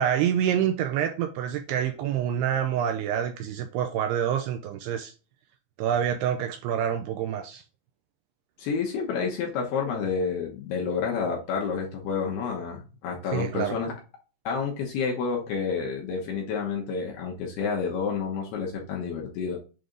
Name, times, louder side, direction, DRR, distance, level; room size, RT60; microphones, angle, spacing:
voice 1, 0.0-5.1 5.8-7.6 13.3-13.8, right 9 dB, 80° right, 2.5 m, -27 dB
voice 2, 8.6-13.9 14.4-19.6, left 5 dB, 70° left, 3.0 m, -29 dB
7.8 x 3.4 x 3.8 m
omnidirectional pair, 4.9 m